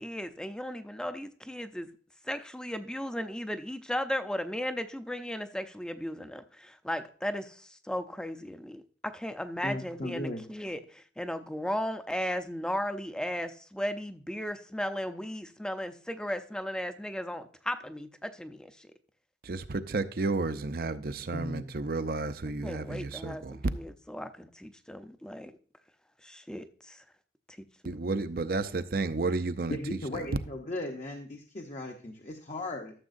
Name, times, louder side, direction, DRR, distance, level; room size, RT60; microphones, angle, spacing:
voice 1, 0.0-1.9 2.3-18.9 22.6-25.5 26.2-27.0, equal, 5° left, 0.5 m, -36 dB
voice 2, 9.6-10.5 21.3-21.7 29.7-32.9, left 1 dB, 40° left, 0.8 m, -37 dB
voice 3, 19.4-23.6 27.8-30.3, right 3 dB, 55° right, 0.6 m, -32 dB
13.5 x 7.3 x 2.6 m
head